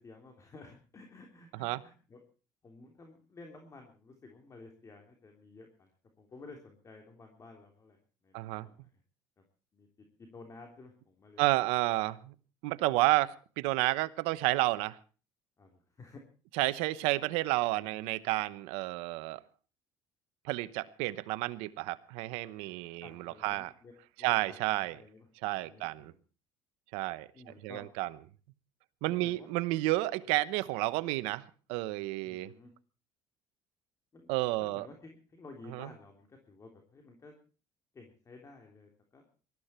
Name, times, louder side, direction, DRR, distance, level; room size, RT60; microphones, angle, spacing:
voice 1, 0.0-2.2 2.6-9.0 9.4-9.5 9.7-9.9 10.2-11.7 12.9-13.0 15.6-16.2 17.7-18.0 22.7-26.2 27.3-27.8 29.0-29.5 32.2-32.7 34.1-34.3 34.6-37.3 37.9-39.2, left 3 dB, 30° left, 3 dB, 3.3 m, -53 dB
voice 2, 8.3-8.7 11.4-12.3 12.6-15.0 16.5-19.4 20.4-23.7 24.2-24.9 25.4-26.1 26.9-27.3 27.6-28.1 29.0-32.5 34.3-34.9 35.7-35.9, right 19 dB, 85° right, 15 dB, 1.0 m, -31 dB
20.0 x 13.5 x 4.4 m, 0.37 s
supercardioid pair, 90°, 10 cm